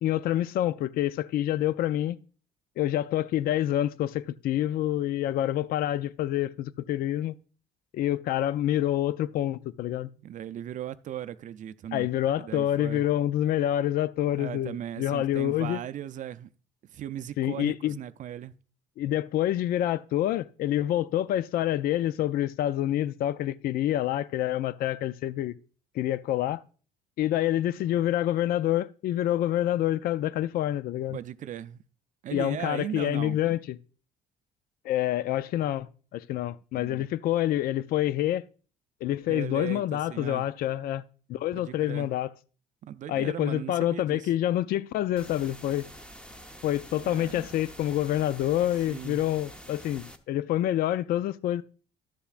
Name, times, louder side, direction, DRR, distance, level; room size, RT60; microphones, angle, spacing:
voice 1, 0.0-2.2 2.8-7.3 7.9-10.1 11.9-15.8 17.4-18.0 19.0-25.5 26.0-26.6 27.2-31.2 32.3-33.8 34.8-38.4 39.0-41.0 41.3-42.3 43.1-45.9 46.6-51.6, left 12 dB, 60° left, 0.4 m, -27 dB
voice 2, 10.2-12.1 12.4-13.0 14.3-16.5 16.9-18.5 31.1-31.8 32.2-33.4 36.7-37.0 39.3-40.5 41.5-42.1 42.8-44.3 47.0-47.5 48.9-49.3, right 11 dB, 50° right, 0.4 m, -38 dB
sound 1, 45.2-50.2, equal, 5° left, 0.8 m, -47 dB
12.5 x 6.9 x 2.4 m
cardioid pair, 110°, 17 cm